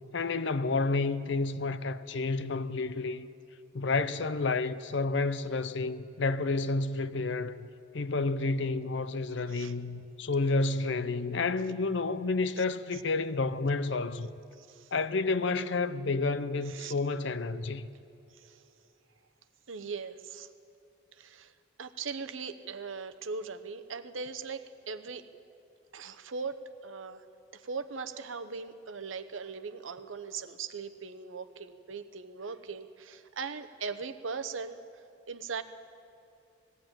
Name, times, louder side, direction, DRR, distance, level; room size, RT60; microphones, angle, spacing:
voice 1, 0.1-3.3 3.7-7.7 7.9-14.3 14.9-17.8, left 3 dB, 65° left, 0.7 m, -30 dB
voice 2, 14.6-14.9 16.6-16.9 18.3-18.6 19.7-20.5 21.1-21.5 21.8-25.2 25.9-27.2 27.5-35.6, right 5 dB, 80° right, 0.9 m, -40 dB
19.5 x 15.0 x 9.0 m
head